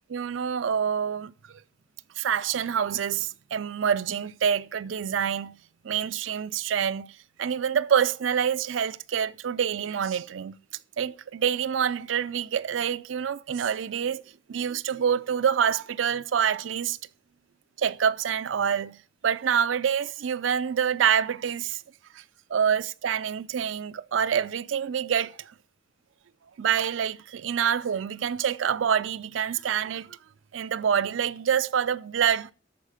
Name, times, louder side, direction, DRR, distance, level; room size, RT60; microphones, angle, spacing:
voice 1, 0.1-1.3 2.2-5.5 5.8-7.1 7.4-10.6 11.0-14.2 14.5-17.0 17.8-19.0 19.2-21.8 22.1-22.2 22.5-25.5 26.6-30.2 30.5-32.5, right 8 dB, 90° right, 0.4 m, -26 dB
13.0 x 4.9 x 5.0 m
head